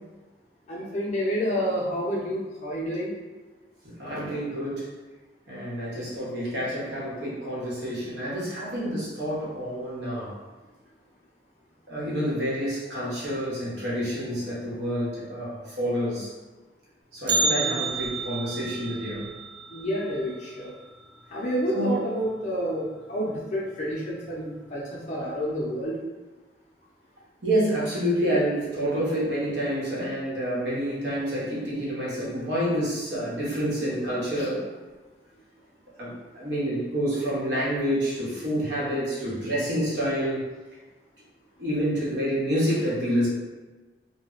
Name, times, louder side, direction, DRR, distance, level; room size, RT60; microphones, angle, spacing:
voice 1, 0.7-3.1 17.4-17.8 19.7-20.7 21.3-26.0 34.4-34.5, equal, 40° left, -5 dB, 0.5 m, -29 dB
voice 2, 3.8-4.9 5.5-10.3 11.9-16.3 17.1-19.3 21.7-22.0 27.4-34.6 36.0-40.5 41.6-43.3, equal, 80° right, -7 dB, 1.0 m, -28 dB
Bell, 17.3-21.4 21.6-21.7 22.2-22.3 23.1-23.2 24.0-24.3 24.6-24.7, right 3 dB, 25° right, 0.4 m, -30 dB
2.2 x 2.1 x 3.7 m, 1.2 s
head